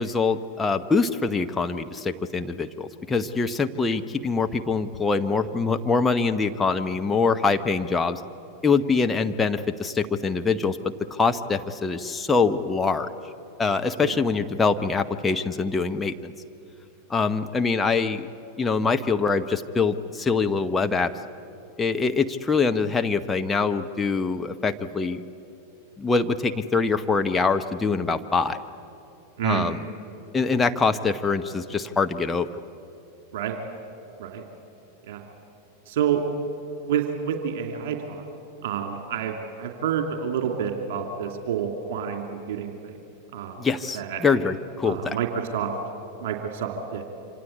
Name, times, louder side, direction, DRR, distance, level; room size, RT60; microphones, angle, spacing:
voice 1, 0.0-8.2 8.6-10.8 11.1-13.1 13.6-16.3 17.1-18.3 18.6-21.1 21.8-25.2 26.0-28.6 29.4-29.8 30.3-32.5 43.6-45.2, left 4 dB, 15° left, 6 dB, 1.0 m, -24 dB
voice 2, 35.9-36.2 36.8-38.3 38.6-42.9 43.3-43.7 43.9-44.2 44.8-45.3 45.5-45.7 46.2-47.0, right 8 dB, 50° right, 3 dB, 2.8 m, -28 dB
27.0 x 26.0 x 8.5 m, 2.7 s
figure-of-eight pair, 90°, 0 cm